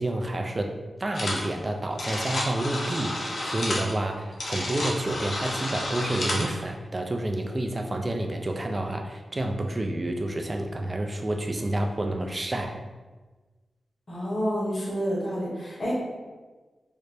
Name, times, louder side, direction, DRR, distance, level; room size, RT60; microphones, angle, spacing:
voice 1, 0.0-12.8, right 1 dB, 30° right, 3 dB, 0.4 m, -29 dB
sound 1, 1.1-1.5 1.8-6.5, left 1 dB, 70° left, 0.6 m, -31 dB
voice 2, 14.1-15.9, equal, 45° left, -5 dB, 1.1 m, -29 dB
3.8 x 2.1 x 3.3 m, 1.3 s
wide cardioid pair, 105°, 0 cm